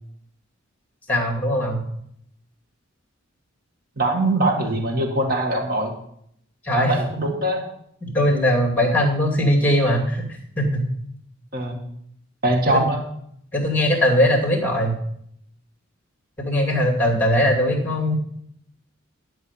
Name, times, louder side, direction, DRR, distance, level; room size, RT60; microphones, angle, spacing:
voice 1, 1.1-1.8 6.6-6.9 8.0-10.3 10.6-10.8 12.7-12.8 13.5-14.9 16.4-18.2, equal, 10° left, 0 dB, 2.4 m, -20 dB
voice 2, 4.0-5.9 6.7-7.6 11.5-11.8 12.4-13.1, right 1 dB, 45° right, 2 dB, 1.9 m, -22 dB
11.0 x 4.7 x 8.1 m, 0.71 s
head